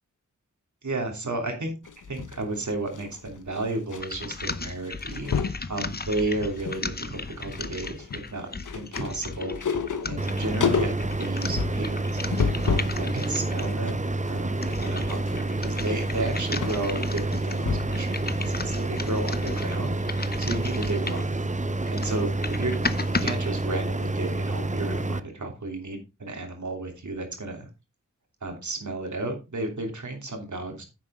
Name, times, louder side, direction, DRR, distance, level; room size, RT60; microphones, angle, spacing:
voice 1, 0.8-1.7 2.1-8.5 8.7-9.6 10.0-12.2 12.6-21.2 21.8-22.8 23.1-27.7 28.4-30.8, right 2 dB, 65° right, 3 dB, 3.0 m, -33 dB
sound 1, 1.9-4.0 4.3-4.5 4.8-5.6 6.2-6.8 7.1-13.0 13.4-18.1 18.4-18.5, left 6 dB, 75° left, 1.0 m, -31 dB
sound 2, 4.0-13.8 14.4-21.4 21.8-23.4, left 3 dB, 30° left, 0.7 m, -36 dB
sound 3, 10.2-25.2, right 2 dB, 25° right, 0.7 m, -28 dB
9.9 x 7.5 x 3.6 m, 0.27 s
wide cardioid pair, 80°, 31 cm